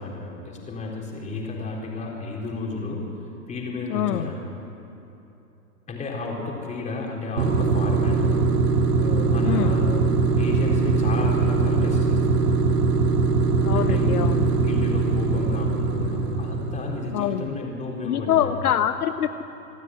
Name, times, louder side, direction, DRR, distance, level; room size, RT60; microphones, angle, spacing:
voice 1, 0.0-3.1 3.5-4.4 5.9-8.5 9.0-10.0 10.4-12.6 13.7-14.3 14.6-18.5, left 3 dB, 15° left, -1 dB, 4.0 m, -32 dB
voice 2, 3.9-4.3 9.4-9.7 13.6-14.5 17.1-17.5 18.0-19.4, left 10 dB, 65° left, 9 dB, 0.9 m, -24 dB
sound 1, 7.4-17.2, right 4 dB, 75° right, 2.2 m, -21 dB
26.0 x 12.5 x 9.4 m, 2.9 s
hypercardioid pair, 135°, 48 cm